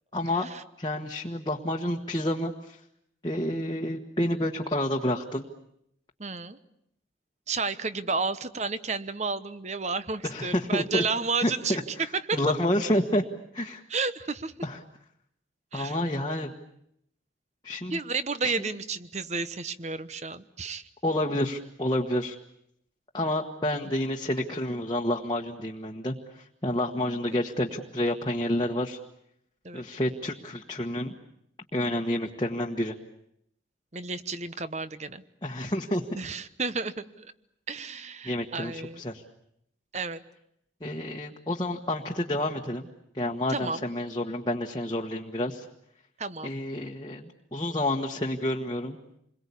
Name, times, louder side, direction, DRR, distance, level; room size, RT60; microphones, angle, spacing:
voice 1, 0.1-0.5 0.8-2.8 3.2-5.4 10.2-11.0 11.4-11.8 12.3-13.2 13.5-13.8 14.6-14.8 15.7-16.5 17.6-18.0 18.4-18.5 21.0-22.3 23.1-29.0 29.7-31.1 31.7-32.9 35.4-36.0 38.2-39.2 40.8-42.9 43.1-45.6 46.4-49.0, left 1 dB, 25° left, 0 dB, 1.4 m, -29 dB
voice 2, 6.2-6.6 7.5-12.4 13.9-14.5 15.7-16.0 16.2-16.4 17.9-20.8 23.8-23.9 29.6-29.9 33.9-35.2 36.1-37.3 37.7-39.0 39.9-40.2 43.5-43.8 46.2-46.5, right 4 dB, 35° right, 13 dB, 1.0 m, -32 dB
28.0 x 22.0 x 8.5 m, 0.75 s
head